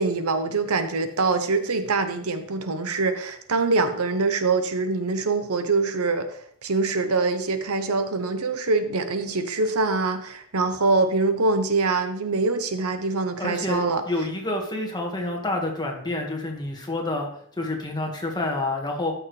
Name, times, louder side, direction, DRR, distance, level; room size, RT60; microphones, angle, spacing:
voice 1, 0.0-14.0, right 3 dB, 70° right, 8 dB, 0.9 m, -24 dB
voice 2, 13.4-17.3 17.6-19.1, left 2 dB, 20° left, 1 dB, 1.7 m, -28 dB
13.5 x 6.3 x 3.3 m, 0.64 s
head